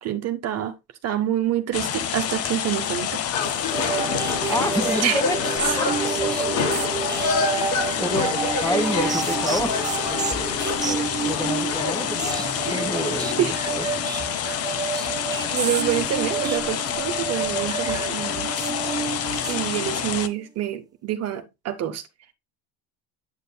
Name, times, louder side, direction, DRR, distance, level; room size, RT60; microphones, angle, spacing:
voice 1, 0.0-0.7 1.0-3.2 5.0-5.2 5.7-5.8 12.6-12.9 13.4-13.5 15.5-18.5 19.5-22.0, right 12 dB, 45° right, 1.1 m, -27 dB
sound 1, 1.7-20.3, left 9 dB, 40° left, 0.9 m, -28 dB
sound 2, 3.3-13.4, left 4 dB, 80° left, 3.5 m, -29 dB
sound 3, 3.7-20.1, right 6 dB, 10° right, 0.3 m, -29 dB
voice 2, 4.5-5.9 6.2-6.3 8.0-9.7 11.2-13.8, equal, 10° left, 1.3 m, -28 dB
8.4 x 6.7 x 2.2 m
supercardioid pair, 115°, 36 cm